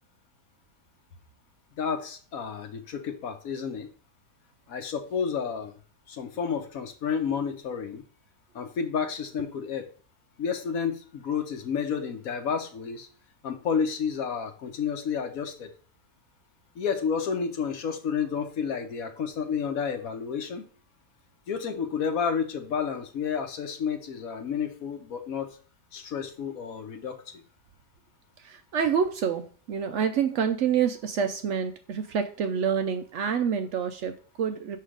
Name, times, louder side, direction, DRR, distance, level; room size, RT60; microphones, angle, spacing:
voice 1, 1.8-3.9 4.7-5.8 6.1-8.0 8.5-9.9 10.4-13.1 13.4-15.7 16.8-20.7 21.5-25.6 25.9-27.4, left 6 dB, 60° left, 6 dB, 1.1 m, -30 dB
voice 2, 28.4-34.8, right 7 dB, 80° right, 7 dB, 0.6 m, -27 dB
6.6 x 3.3 x 4.9 m, 0.40 s
omnidirectional pair, 1.8 m